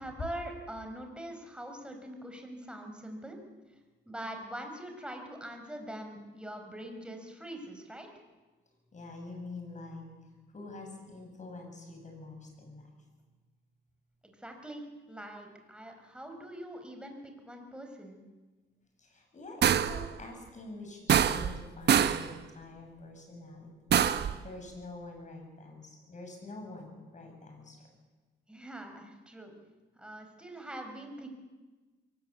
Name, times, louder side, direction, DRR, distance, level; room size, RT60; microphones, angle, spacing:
voice 1, 0.0-3.4 4.1-8.1 14.2-18.2 28.5-29.5 30.0-31.3, right 1 dB, 5° right, 4 dB, 4.8 m, -43 dB
voice 2, 8.9-10.1 10.5-12.9 19.0-27.9, left 2 dB, 40° left, 3 dB, 7.8 m, -46 dB
sound 1, 19.6-20.1 21.1-21.6 21.9-22.3 23.9-24.4, right 9 dB, 55° right, 1.0 m, -24 dB
22.5 x 19.5 x 8.4 m, 1.3 s
cardioid pair, 90°, 20 cm